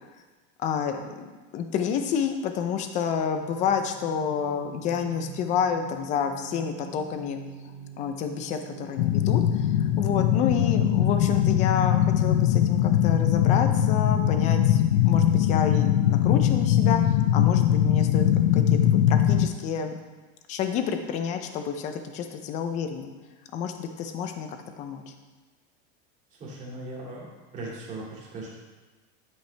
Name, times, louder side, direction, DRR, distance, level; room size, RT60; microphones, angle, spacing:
voice 1, 0.6-1.3 1.5-7.4 8.0-17.0 17.3-18.2 18.5-20.0 20.5-23.1 23.5-25.1, left 7 dB, 20° left, 6 dB, 0.5 m, -29 dB
sound 1, 3.0-10.8, right 4 dB, 60° right, 2.5 m, -44 dB
sound 2, 9.0-19.5, left 11 dB, 65° left, 0.6 m, -21 dB
voice 2, 26.3-27.3 27.5-28.5, right 2 dB, 20° right, -5 dB, 2.6 m, -38 dB
10.5 x 8.6 x 3.3 m, 1.2 s
supercardioid pair, 170°, 33 cm